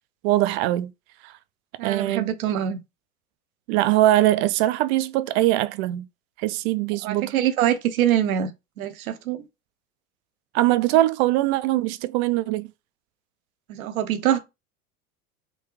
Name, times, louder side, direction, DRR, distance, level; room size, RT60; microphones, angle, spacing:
voice 1, 0.2-0.9 1.2-1.3 1.8-2.3 3.7-6.1 6.4-7.3 10.5-12.7, right 15 dB, 50° right, 0.5 m, -22 dB
voice 2, 1.8-2.8 7.0-8.5 8.8-9.4 13.7-14.4, right 11 dB, 70° right, 0.8 m, -24 dB
3.8 x 2.3 x 3.0 m
hypercardioid pair, 90°, 44 cm